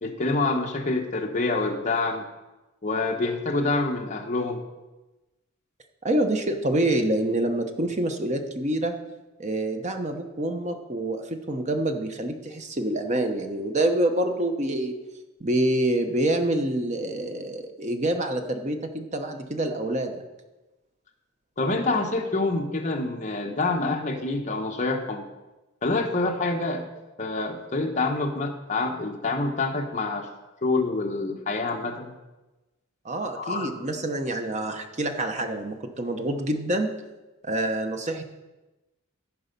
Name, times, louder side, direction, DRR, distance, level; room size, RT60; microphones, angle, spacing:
voice 1, 0.0-2.2 2.8-4.6 21.6-25.2 25.8-26.8 27.2-30.3 30.6-32.1 33.3-33.7, left 3 dB, 35° left, 2 dB, 1.1 m, -26 dB
voice 2, 6.0-8.9 9.4-14.9 15.4-20.1 33.0-36.9 37.4-38.2, right 1 dB, 35° right, 5 dB, 1.0 m, -26 dB
14.0 x 5.5 x 5.3 m, 1.1 s
head